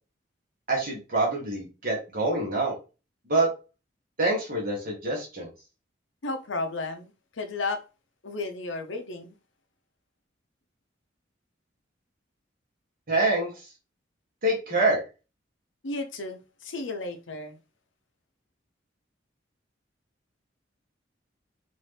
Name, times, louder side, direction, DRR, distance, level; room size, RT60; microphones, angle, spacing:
voice 1, 0.7-2.8 3.3-3.5 4.2-5.5 13.1-13.7 14.4-15.0, right 2 dB, 45° right, 1.3 m, -26 dB
voice 2, 6.2-7.8 8.2-9.4 15.8-17.6, left 3 dB, 85° left, 0.8 m, -33 dB
4.1 x 2.7 x 3.3 m
head